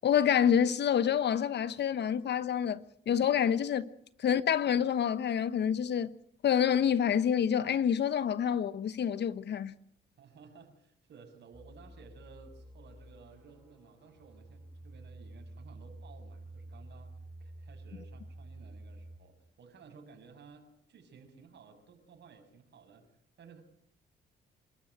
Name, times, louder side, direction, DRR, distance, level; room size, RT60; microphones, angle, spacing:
voice 1, 0.0-3.9 4.2-6.1 6.4-9.7, left 8 dB, 60° left, 1.1 m, -27 dB
voice 2, 10.2-23.1 23.4-23.6, right 5 dB, 60° right, 7.0 m, -56 dB
sound 1, 11.5-19.2, right 1 dB, ahead, 6.0 m, -50 dB
27.0 x 13.5 x 9.2 m
cardioid pair, 90°, 20 cm